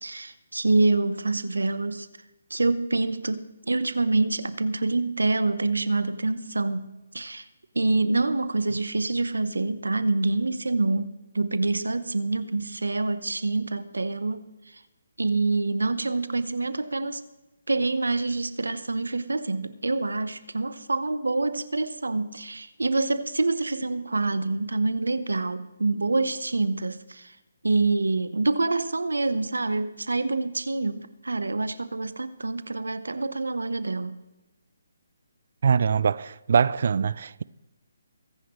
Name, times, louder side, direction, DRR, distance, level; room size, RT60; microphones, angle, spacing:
voice 1, 0.0-2.1 2.5-6.9 7.1-7.4 7.7-14.4 14.7-14.8 15.2-17.2 17.7-27.3 27.6-34.1, right 3 dB, 85° right, 0.9 m, -26 dB
voice 2, 35.6-37.4, right 6 dB, 55° right, 0.4 m, -23 dB
23.0 x 10.0 x 3.2 m
figure-of-eight pair, 150°, 0 cm